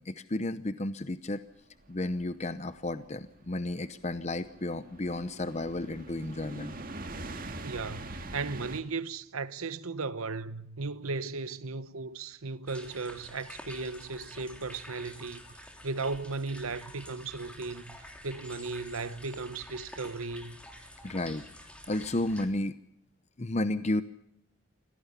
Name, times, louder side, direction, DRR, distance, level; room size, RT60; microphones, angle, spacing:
voice 1, 0.0-1.4 1.9-6.7 21.0-21.4 21.9-22.8 23.4-24.0, left 2 dB, 30° left, 0.7 m, -32 dB
sound 1, 1.8-8.8, right 2 dB, 40° right, 2.0 m, -43 dB
voice 2, 7.6-20.6, right 3 dB, 85° right, 1.1 m, -36 dB
sound 2, 12.7-22.5, left 1 dB, 5° left, 3.1 m, -48 dB
24.5 x 17.5 x 6.9 m
head